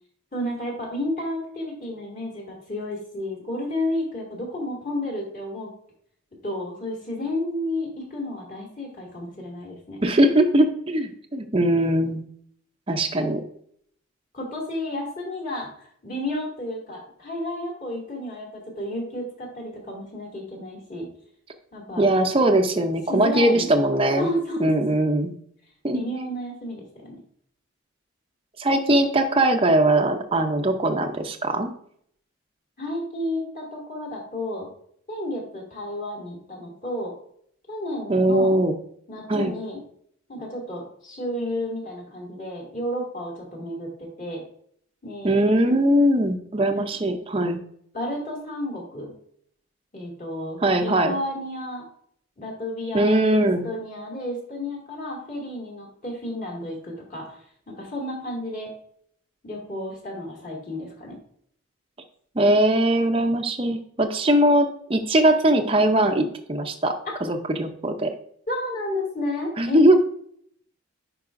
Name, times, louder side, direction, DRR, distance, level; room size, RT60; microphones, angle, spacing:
voice 1, 0.3-5.7 6.4-10.0 14.3-15.7 16.0-21.1 21.7-22.1 23.1-23.7 24.2-24.7 25.9-27.2 32.8-34.7 35.1-37.1 37.7-38.6 39.1-39.8 40.3-44.4 45.0-45.3 47.9-49.1 49.9-51.9 52.4-57.4 57.7-58.7 59.4-61.2 68.5-69.8, left 1 dB, 40° left, -2 dB, 2.3 m, -31 dB
voice 2, 10.0-12.2 12.9-13.4 22.0-24.3 24.6-25.3 25.8-26.0 28.6-31.7 38.1-38.8 39.3-39.6 45.2-47.6 50.6-51.2 52.9-53.7 62.4-66.9 67.2-68.1 69.6-70.0, right 1 dB, 25° right, 5 dB, 0.6 m, -20 dB
10.5 x 4.8 x 2.5 m, 0.65 s
head